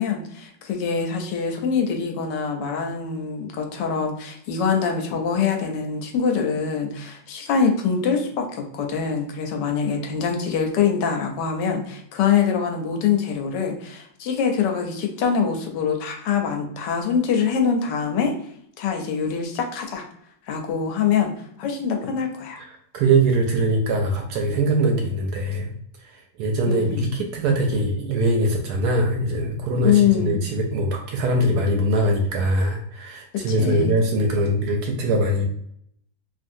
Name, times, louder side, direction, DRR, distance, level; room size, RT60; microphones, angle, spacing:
voice 1, 0.0-18.3 18.8-20.0 20.5-21.3 21.6-22.6 26.7-27.1 29.8-30.4 33.3-34.0, left 6 dB, 80° left, 3 dB, 1.2 m, -24 dB
voice 2, 22.6-25.7 26.0-35.4, right 1 dB, 70° right, 2 dB, 1.0 m, -22 dB
3.0 x 2.5 x 2.6 m, 0.69 s
omnidirectional pair, 1.9 m